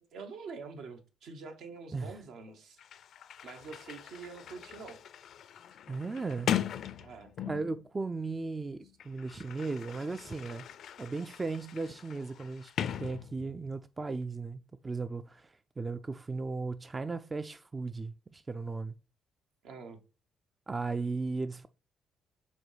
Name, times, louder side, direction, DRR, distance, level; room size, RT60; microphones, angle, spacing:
voice 1, 0.1-2.8 3.4-5.0 7.0-7.3 19.6-20.0, right 5 dB, 75° right, 1.2 m, -46 dB
Sliding door, 2.5-2.6 2.8-7.8 8.8-13.7, left 10 dB, 65° left, 0.4 m, -39 dB
voice 2, 5.9-6.5 7.5-10.6 11.0-12.7 13.0-18.9 20.7-21.7, right 3 dB, 25° right, 0.3 m, -36 dB
5.1 x 3.7 x 5.0 m
cardioid pair, 100°, 0 cm